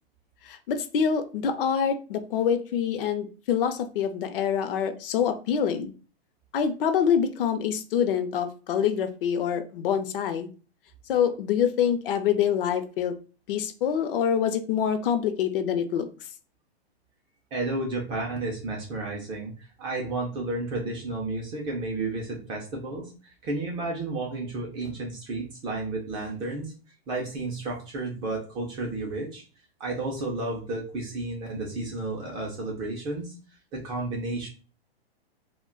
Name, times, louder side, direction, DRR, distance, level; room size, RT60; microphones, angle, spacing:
voice 1, 0.4-5.9 6.5-10.5 11.1-13.2 13.5-16.1, left 8 dB, 60° left, 9 dB, 0.5 m, -26 dB
voice 2, 17.5-23.1 23.4-26.7 27.1-29.4 29.8-33.3 33.7-34.5, right 2 dB, 15° right, -1 dB, 0.3 m, -32 dB
2.2 x 2.2 x 3.6 m, 0.36 s
hypercardioid pair, 135°, 32 cm